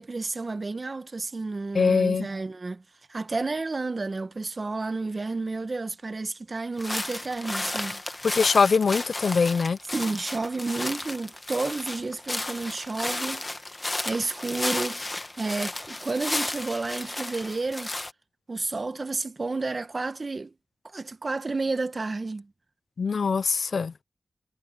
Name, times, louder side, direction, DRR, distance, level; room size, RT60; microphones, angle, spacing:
voice 1, 0.0-2.8 3.1-8.0 9.9-13.5 14.0-17.9 18.5-20.5 20.9-22.5, right 3 dB, 50° right, 1.1 m, -31 dB
voice 2, 1.7-2.3 8.2-9.8 23.0-23.9, left 5 dB, 85° left, 0.4 m, -22 dB
sound 1, 6.8-18.1, left 2 dB, 30° left, 1.6 m, -33 dB
cardioid pair, 55°, 0 cm